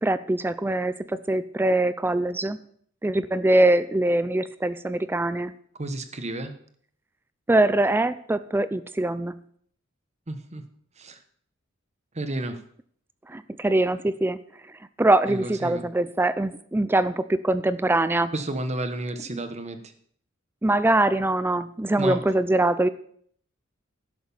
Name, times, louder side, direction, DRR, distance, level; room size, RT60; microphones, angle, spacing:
voice 1, 0.0-2.6 3.0-5.5 7.5-9.3 13.3-14.4 15.0-18.3 20.6-22.9, right 2 dB, 10° right, 14 dB, 0.4 m, -23 dB
voice 2, 5.8-6.5 10.3-10.6 11.0-11.2 12.1-12.6 15.3-15.9 18.3-19.8 22.0-22.2, right 1 dB, 35° right, 9 dB, 1.1 m, -31 dB
11.5 x 6.4 x 7.0 m, 0.62 s
head